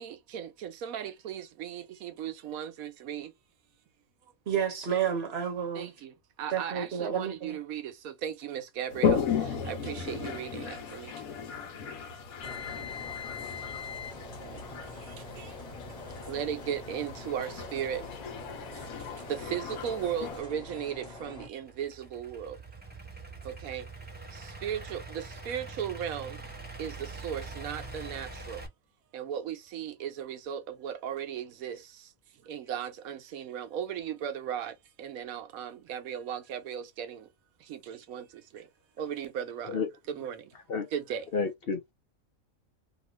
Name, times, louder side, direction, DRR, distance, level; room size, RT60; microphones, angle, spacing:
voice 1, 0.0-3.3 5.7-11.2 13.4-13.5 14.3-15.6 16.3-18.1 18.7-22.6 23.4-23.9 24.3-26.4 26.8-28.7 29.1-32.1 32.4-37.3 37.6-38.7 39.0-39.8 40.1-40.5 40.9-41.3, right 9 dB, 80° right, 1.1 m, -37 dB
voice 2, 4.5-5.9 6.5-7.6, right 8 dB, 50° right, 1.1 m, -30 dB
Toilet flush, 8.9-20.4, left 6 dB, 80° left, 1.2 m, -35 dB
sound 1, 12.4-21.5, left 4 dB, 30° left, 1.0 m, -43 dB
Idling / Accelerating revving vroom, 21.5-28.7, right 3 dB, 10° right, 0.6 m, -44 dB
voice 3, 41.3-41.9, left 4 dB, 55° left, 0.7 m, -30 dB
2.8 x 2.5 x 3.0 m
omnidirectional pair, 1.5 m